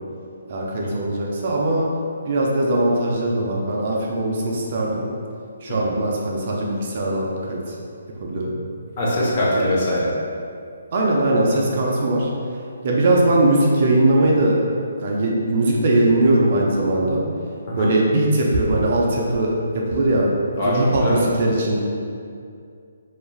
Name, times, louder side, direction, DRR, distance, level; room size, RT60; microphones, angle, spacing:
voice 1, 0.5-1.9 2.2-5.0 5.6-7.8 8.2-8.5 10.9-12.3 12.8-14.6 15.0-17.2 17.8-20.3 20.6-21.8, right 1 dB, 35° right, -2 dB, 0.3 m, -20 dB
voice 2, 9.0-10.1 17.7-17.9 20.6-21.2, left 1 dB, 30° left, -6 dB, 0.5 m, -22 dB
3.1 x 2.3 x 2.2 m, 2.3 s
hypercardioid pair, 170°, 0 cm